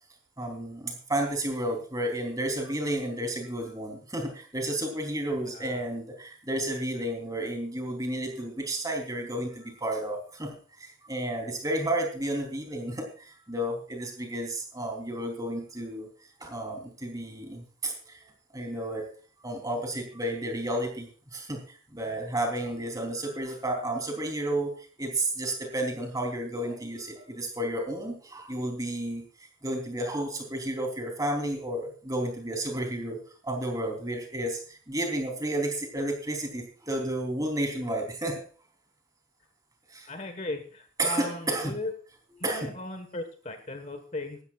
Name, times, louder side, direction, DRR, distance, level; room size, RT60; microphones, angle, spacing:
voice 1, 0.4-10.5 10.8-16.1 16.4-18.2 18.5-19.1 19.4-29.2 29.6-38.4 39.9-40.1 41.0-41.7 42.4-42.7, right 1 dB, 15° right, 3 dB, 3.5 m, -32 dB
voice 2, 5.5-5.8 40.1-41.9 42.4-44.4, left 2 dB, 35° left, 7 dB, 1.4 m, -37 dB
18.5 x 13.0 x 2.5 m, 0.40 s
head